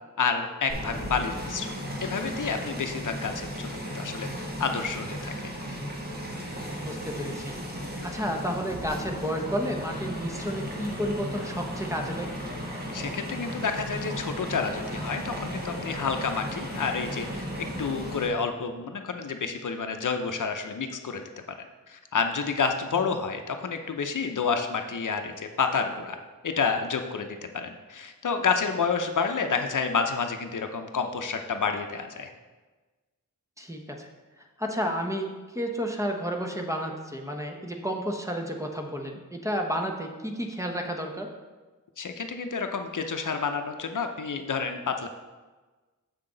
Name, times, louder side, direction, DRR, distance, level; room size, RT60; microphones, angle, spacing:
voice 1, 0.2-1.7 2.0-5.5 12.9-17.5 17.8-21.2 21.9-26.2 26.4-27.3 27.5-32.3 42.0-45.1, left 5 dB, 65° left, 6 dB, 0.6 m, -29 dB
sound 1, 0.7-18.3, equal, 30° right, 1.4 m, -35 dB
voice 2, 6.8-7.6 8.0-12.3 23.0-23.1 33.6-34.1 34.6-41.3, equal, 10° right, 2 dB, 0.8 m, -31 dB
7.2 x 5.8 x 3.8 m, 1.3 s
wide cardioid pair, 90°, 34 cm